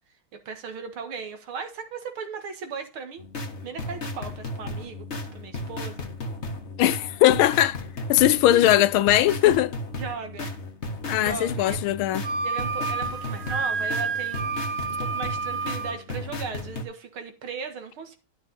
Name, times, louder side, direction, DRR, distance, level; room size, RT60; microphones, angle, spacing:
voice 1, 0.3-3.2 3.6-5.9 8.3-8.7 10.0-10.5 11.2-11.8 12.4-18.2, right 5 dB, 85° right, 2.5 m, -37 dB
sound 1, 3.2-16.8, left 2 dB, 35° left, 1.4 m, -35 dB
voice 2, 6.8-7.8 8.1-9.7 11.1-12.2, left 13 dB, 80° left, 1.4 m, -20 dB
Wind instrument woodwind instrument, 12.2-16.0, right 5 dB, 60° right, 1.8 m, -29 dB
12.0 x 6.1 x 4.1 m
omnidirectional pair, 2.3 m